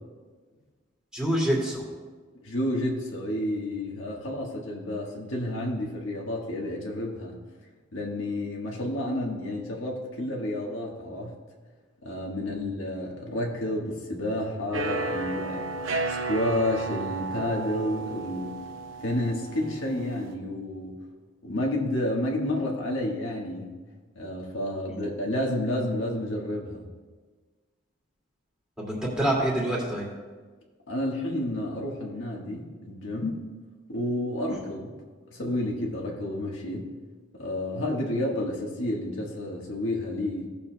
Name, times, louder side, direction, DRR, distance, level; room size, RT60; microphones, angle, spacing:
voice 1, 1.1-1.8 12.5-12.7 24.9-25.0 28.8-30.1 34.5-34.6, right 1 dB, 5° right, -5 dB, 2.2 m, -27 dB
voice 2, 2.4-7.4 7.9-11.3 12.0-15.7 16.1-18.6 19.0-21.0 21.4-23.7 24.1-26.8 30.9-33.4 33.9-35.0 35.3-36.9 37.4-40.5, left 1 dB, 75° left, -1 dB, 1.5 m, -30 dB
sound 1, 14.7-20.3, right 3 dB, 75° right, 0.7 m, -33 dB
17.0 x 6.9 x 2.2 m, 1.4 s
head